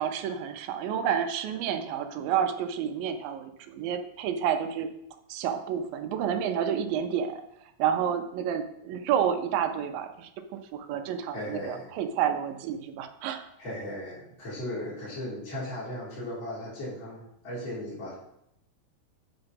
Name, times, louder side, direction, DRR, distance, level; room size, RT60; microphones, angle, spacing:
voice 1, 0.0-4.9 5.3-7.4 7.8-13.5, right 8 dB, 80° right, 7 dB, 2.4 m, -30 dB
voice 2, 11.3-11.9 13.6-18.1, left 1 dB, 35° left, -8 dB, 4.1 m, -36 dB
8.0 x 4.8 x 5.3 m, 0.77 s
omnidirectional pair, 4.1 m